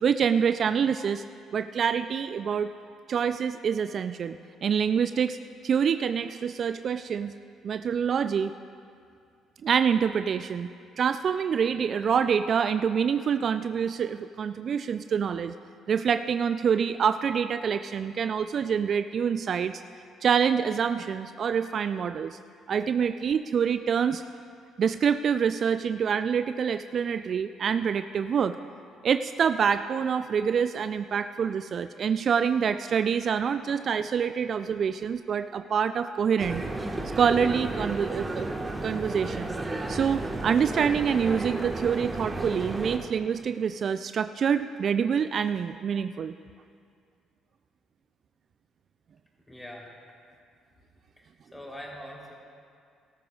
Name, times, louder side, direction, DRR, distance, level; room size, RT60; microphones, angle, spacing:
voice 1, 0.0-1.2 1.5-2.7 3.1-5.4 5.6-7.3 7.6-8.5 9.6-10.7 11.0-15.5 15.9-19.8 20.2-22.4 22.7-24.2 24.8-28.6 29.0-36.6 37.2-38.5 38.8-39.6 39.9-46.3, right 7 dB, 50° right, 10 dB, 0.3 m, -26 dB
sound 1, 36.4-43.0, right 2 dB, 20° right, 1.4 m, -33 dB
voice 2, 49.5-49.9 51.2-52.3, equal, 15° left, -2 dB, 3.4 m, -43 dB
18.0 x 13.5 x 2.4 m, 2.3 s
hypercardioid pair, 50°, 0 cm